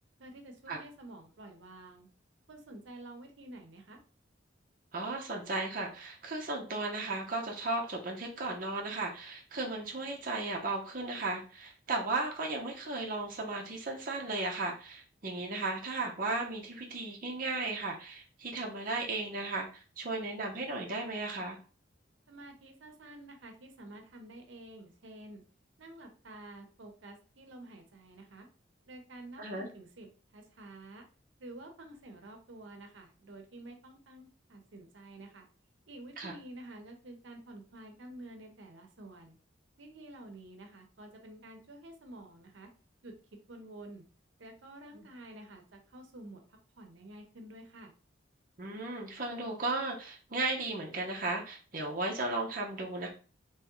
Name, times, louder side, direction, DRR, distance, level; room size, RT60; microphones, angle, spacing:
voice 1, 0.2-2.1 2.5-4.0 22.3-25.4 25.8-28.5 28.9-31.0 31.4-35.5 35.9-39.3 39.8-42.7 43.0-43.1 43.5-44.0 44.4-47.9, right 1 dB, 80° right, 4 dB, 0.8 m, -50 dB
voice 2, 4.9-21.6 29.4-29.7 36.2-36.3 44.9-45.0 48.6-53.1, right 2 dB, 50° right, 0 dB, 0.7 m, -35 dB
3.5 x 3.0 x 3.0 m, 0.38 s
head